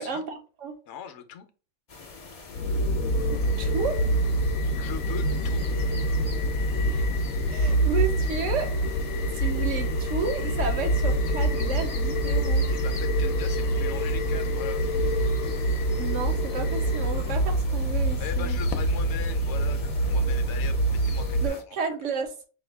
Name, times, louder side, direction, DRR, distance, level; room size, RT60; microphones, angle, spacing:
voice 1, 0.0-0.7 3.3-4.0 6.9-7.1 7.5-9.0 9.3-12.7 16.0-18.6 21.4-22.3, right 5 dB, 65° right, 1.0 m, -32 dB
voice 2, 0.9-1.5 4.7-5.7 12.7-14.9 18.2-21.9, left 8 dB, 65° left, 0.9 m, -40 dB
sound 1, 1.9-21.6, left 4 dB, 40° left, 0.5 m, -45 dB
sound 2, 2.5-21.5, right 1 dB, 80° left, 1.0 m, -25 dB
5.0 x 2.3 x 3.3 m
omnidirectional pair, 1.5 m